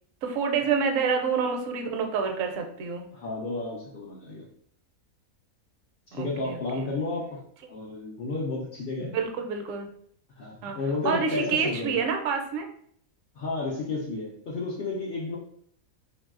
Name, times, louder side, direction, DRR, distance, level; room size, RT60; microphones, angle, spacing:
voice 1, 0.2-3.1 6.1-6.9 9.0-9.9 10.6-10.8 11.0-12.7, right 5 dB, 70° right, 4 dB, 0.9 m, -28 dB
voice 2, 3.1-4.5 6.1-7.4 7.7-9.2 10.4-12.0 13.4-15.4, left 3 dB, 65° left, -3 dB, 0.5 m, -32 dB
2.9 x 2.6 x 2.4 m, 0.63 s
omnidirectional pair, 1.5 m